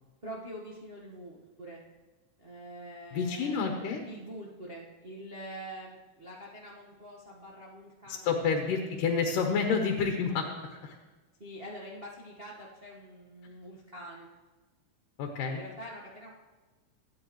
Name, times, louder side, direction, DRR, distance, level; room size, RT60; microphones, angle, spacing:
voice 1, 0.2-1.8 2.4-3.6 4.1-8.3 11.4-14.3 15.5-16.3, right 1 dB, 50° right, -4 dB, 0.7 m, -45 dB
voice 2, 3.1-4.0 8.1-11.0 15.2-15.6, left 5 dB, 80° left, 3 dB, 2.7 m, -29 dB
25.0 x 9.6 x 3.1 m, 1.3 s
omnidirectional pair, 3.7 m